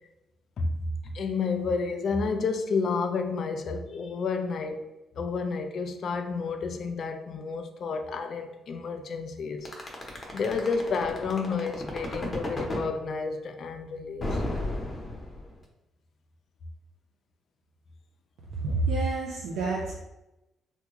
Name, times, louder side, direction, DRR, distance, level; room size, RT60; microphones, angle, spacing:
voice 1, 0.6-4.9 5.2-9.7 10.3-14.4, left 4 dB, 60° left, 0.4 m, -30 dB
sound 1, 9.7-12.9 14.2-15.6, left 1 dB, 25° left, 0.8 m, -32 dB
voice 2, 18.6-19.9, right 3 dB, 80° right, 0.5 m, -28 dB
3.4 x 2.2 x 2.9 m
cardioid pair, 90°, 0 cm